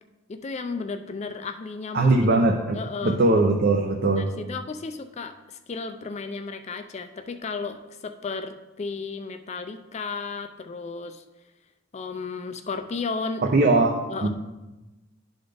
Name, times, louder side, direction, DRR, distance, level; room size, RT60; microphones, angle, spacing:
voice 1, 0.3-2.1 2.7-3.2 4.1-11.2 11.9-13.4 14.1-14.3, left 4 dB, 30° left, 8 dB, 0.4 m, -34 dB
voice 2, 1.9-4.3 13.5-13.9 14.2-14.3, right 2 dB, 45° right, 2 dB, 0.6 m, -20 dB
11.5 x 4.0 x 3.4 m, 1.1 s
head